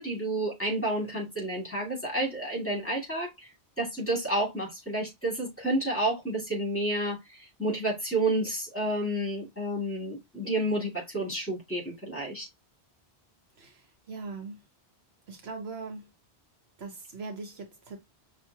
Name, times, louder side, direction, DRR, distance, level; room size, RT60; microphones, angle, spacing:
voice 1, 0.0-3.5 3.8-12.5, right 1 dB, 10° left, 2.2 m, -30 dB
voice 2, 13.6-14.6 15.3-16.1 16.8-18.0, right 3 dB, 70° right, 1.1 m, -40 dB
5.7 x 2.6 x 2.8 m
omnidirectional pair, 1.1 m